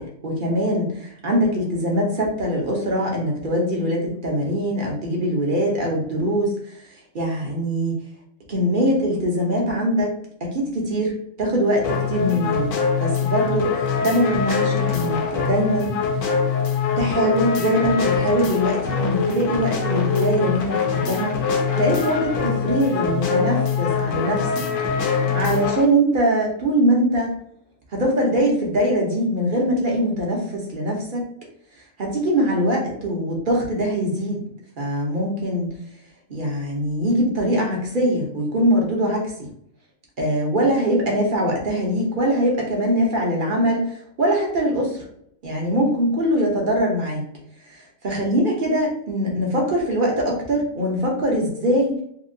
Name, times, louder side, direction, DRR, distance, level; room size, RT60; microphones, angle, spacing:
voice 1, 0.0-6.8 7.1-7.9 8.5-10.1 10.4-16.0 17.0-21.4 21.8-24.5 25.1-27.3 27.9-31.2 32.0-34.4 34.8-35.7 36.3-39.5 40.2-45.0 45.4-47.2 47.6-52.0, equal, 45° right, -1 dB, 0.8 m, -22 dB
sound 1, 11.8-25.9, left 6 dB, 70° left, 0.9 m, -23 dB
2.8 x 2.7 x 2.6 m, 0.70 s
omnidirectional pair, 1.4 m